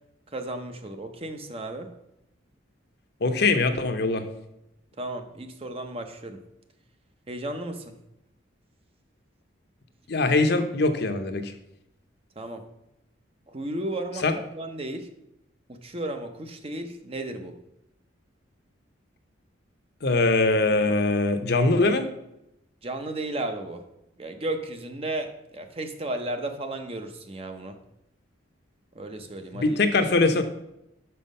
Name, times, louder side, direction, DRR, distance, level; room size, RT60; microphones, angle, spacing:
voice 1, 0.3-1.9 5.0-6.4 7.3-8.0 12.4-12.6 13.5-15.1 15.7-17.6 22.8-23.8 24.2-27.8 28.9-29.8, right 1 dB, 30° right, 6 dB, 0.7 m, -34 dB
voice 2, 3.2-4.3 10.1-11.5 14.2-14.3 20.0-22.0 29.5-30.4, left 3 dB, 55° left, 8 dB, 0.7 m, -22 dB
6.1 x 5.6 x 5.4 m, 0.84 s
head